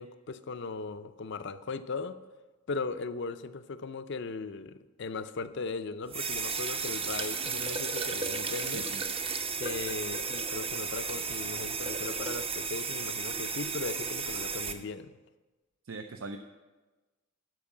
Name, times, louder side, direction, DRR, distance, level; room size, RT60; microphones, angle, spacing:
voice 1, 0.0-2.2 2.7-8.9 9.6-15.1, left 4 dB, 60° left, 0.5 m, -38 dB
sound 1, 6.1-14.7, right 5 dB, 30° right, 0.7 m, -34 dB
voice 2, 8.7-9.0 15.8-16.4, right 3 dB, 75° right, 0.5 m, -40 dB
12.5 x 4.6 x 7.1 m
head